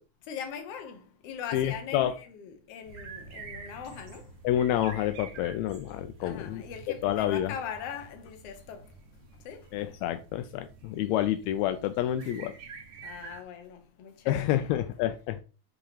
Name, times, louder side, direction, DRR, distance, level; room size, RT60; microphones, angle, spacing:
voice 1, 0.3-4.3 6.2-8.9 9.4-9.7 12.2-12.3 13.0-14.8, left 7 dB, 65° left, 1.7 m, -41 dB
voice 2, 1.5-2.1 4.4-6.6 7.0-7.5 9.7-12.5 14.3-15.4, left 12 dB, 85° left, 1.6 m, -28 dB
sound 1, 2.8-13.4, right 4 dB, 65° right, 1.2 m, -48 dB
7.5 x 3.0 x 4.9 m
omnidirectional pair, 3.7 m